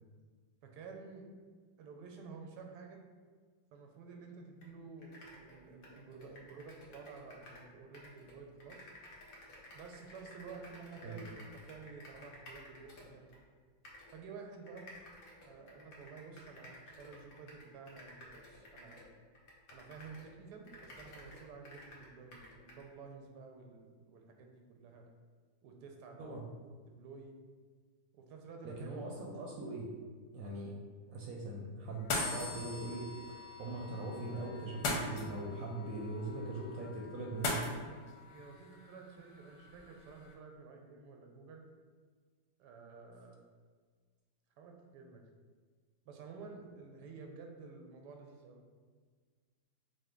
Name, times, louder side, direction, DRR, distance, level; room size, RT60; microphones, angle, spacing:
voice 1, 0.6-1.3 1.8-3.0 3.7-8.9 9.7-13.4 14.1-14.9 15.5-19.0 19.7-25.0 25.6-26.4 26.9-27.3 28.1-28.9 38.3-41.7 42.6-43.4 44.6-45.2 46.0-48.6, right 4 dB, 90° right, 3 dB, 1.2 m, -51 dB
sound 1, 4.6-4.7 5.0-7.7 7.9-13.4 13.8-14.2 14.7-20.3 20.6-22.9, left 1 dB, 60° left, 1.2 m, -54 dB
voice 2, 28.6-29.9 30.3-30.7 31.1-37.6, right 2 dB, 70° right, -1 dB, 0.9 m, -41 dB
sound 2, 31.9-40.3, left 2 dB, 90° left, 1.3 m, -42 dB
sound 3, 32.1-38.6, left 4 dB, 40° left, 0.7 m, -49 dB
5.1 x 2.1 x 3.6 m, 1.5 s
omnidirectional pair, 1.7 m